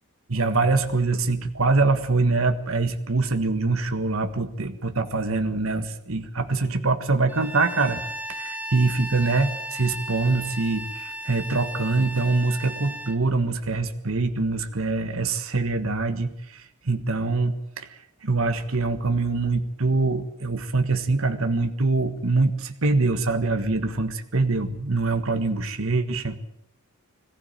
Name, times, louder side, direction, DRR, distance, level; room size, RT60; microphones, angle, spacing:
voice 1, 0.3-8.0 8.3-26.4, right 3 dB, 70° right, 7 dB, 1.6 m, -24 dB
Bowed string instrument, 7.3-13.2, right 1 dB, 5° right, 0.8 m, -35 dB
21.5 x 15.5 x 9.0 m, 0.77 s
head